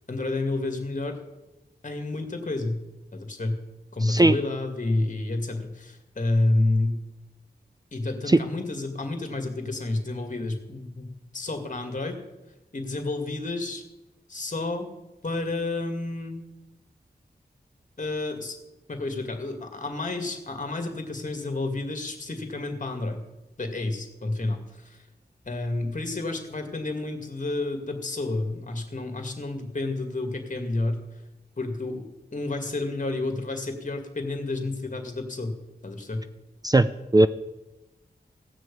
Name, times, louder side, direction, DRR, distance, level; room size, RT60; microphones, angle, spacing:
voice 1, 0.1-1.2 1.8-2.8 3.1-3.6 3.9-7.0 7.9-11.1 11.3-12.2 12.7-13.8 14.3-14.9 15.2-16.4 18.0-18.6 18.9-23.2 23.6-25.0 25.5-31.0 31.6-32.1 32.3-35.5 35.8-36.2, left 2 dB, 45° left, 5 dB, 2.3 m, -30 dB
voice 2, 4.0-4.3 8.3-8.4 36.6-36.9 37.1-37.3, right 2 dB, 20° right, 12 dB, 0.5 m, -17 dB
16.5 x 6.3 x 8.5 m, 1.0 s
wide cardioid pair, 90°, 18 cm